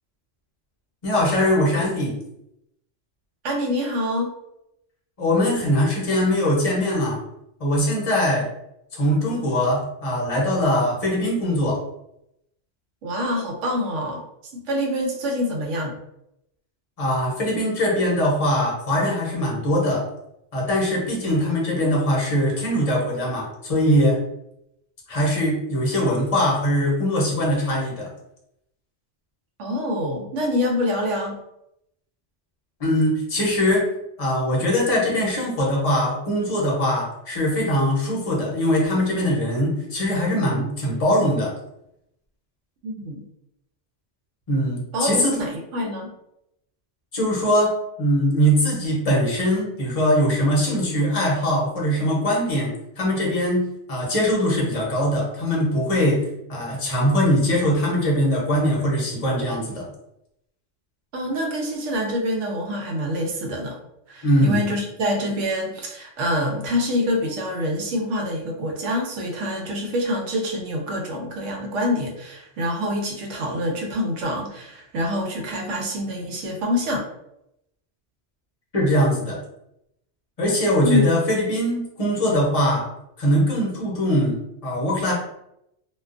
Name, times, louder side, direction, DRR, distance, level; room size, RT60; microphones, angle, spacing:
voice 1, 1.0-2.2 5.2-7.2 7.6-8.5 8.9-11.8 17.0-20.1 20.5-24.2 25.1-28.1 32.8-33.9 34.2-41.5 44.5-45.4 47.1-59.9 64.2-64.6 78.7-79.4 80.4-82.8 83.2-85.1, equal, 40° left, -3 dB, 0.7 m, -21 dB
voice 2, 3.4-4.3 13.0-14.2 14.5-15.9 29.6-31.4 42.8-43.3 44.9-46.1 61.1-63.8 64.1-77.0 80.8-81.1, left 1 dB, 85° right, 1 dB, 0.9 m, -26 dB
2.4 x 2.2 x 2.4 m, 0.81 s
omnidirectional pair, 1.2 m